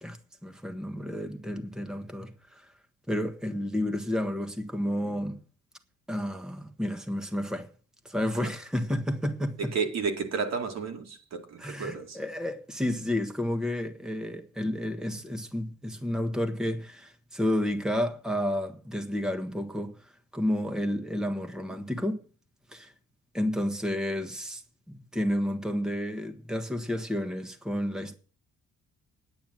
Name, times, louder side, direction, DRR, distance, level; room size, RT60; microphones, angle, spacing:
voice 1, 0.0-2.7 3.1-5.4 6.1-7.7 8.0-9.6 11.6-22.2 22.7-22.9 23.3-24.6 24.9-28.2, left 1 dB, ahead, 1.4 m, -31 dB
voice 2, 9.6-12.2 15.1-15.2, right 5 dB, 60° right, 2.3 m, -32 dB
9.3 x 9.2 x 7.6 m
cardioid pair, 90°, 30 cm